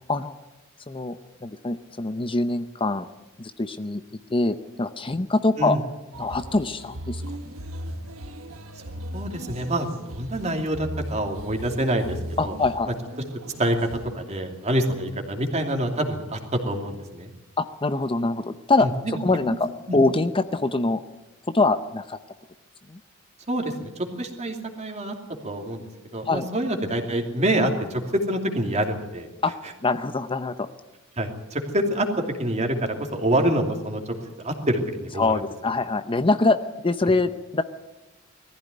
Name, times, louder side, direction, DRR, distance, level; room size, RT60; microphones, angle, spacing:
voice 1, 0.9-3.1 3.4-4.0 4.3-5.8 6.2-7.2 12.4-13.0 17.6-21.0 21.5-22.2 22.9-23.0 26.2-26.5 29.4-29.5 29.8-30.7 35.2-37.6, left 3 dB, 25° left, 10 dB, 0.7 m, -24 dB
sound 1, 6.1-14.2, equal, 80° right, 1.2 m, -37 dB
voice 2, 9.1-9.9 10.1-12.2 12.4-12.5 13.6-13.9 14.1-17.3 18.8-19.2 19.5-19.6 19.9-20.0 23.5-25.1 25.4-25.8 26.1-29.3 31.2-34.1 34.4-35.3, right 1 dB, 35° right, 4 dB, 2.8 m, -26 dB
20.0 x 15.0 x 9.5 m, 1.1 s
head